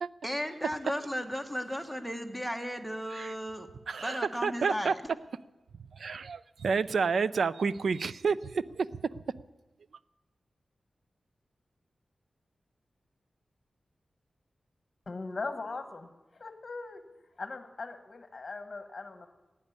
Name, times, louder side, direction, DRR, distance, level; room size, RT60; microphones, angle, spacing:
voice 1, 0.2-3.7 4.0-5.0, equal, 5° right, 6 dB, 1.3 m, -35 dB
voice 2, 3.9-4.9 6.0-8.9, right 5 dB, 80° right, 16 dB, 0.5 m, -29 dB
voice 3, 15.1-17.0 17.4-19.3, left 3 dB, 40° left, 7 dB, 1.1 m, -40 dB
17.0 x 9.6 x 8.5 m, 1.1 s
wide cardioid pair, 115°, 0 cm